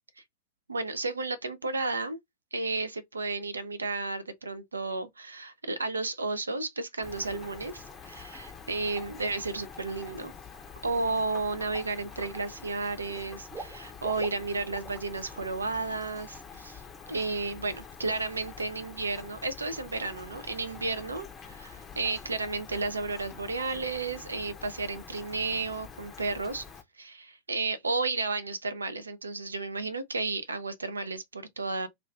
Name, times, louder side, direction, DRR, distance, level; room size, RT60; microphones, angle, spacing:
voice 1, 0.7-2.2 2.5-10.3 10.8-16.8 17.1-26.7 27.0-31.9, right 3 dB, 75° right, 0.4 m, -33 dB
Rain, 7.0-26.8, left 5 dB, 20° left, 0.5 m, -46 dB
Water / Liquid, 11.8-12.3 12.6-15.1 15.4-15.6 15.9-16.0, right 3 dB, 25° right, 0.9 m, -45 dB
2.4 x 2.2 x 3.3 m
figure-of-eight pair, 90°, 0 cm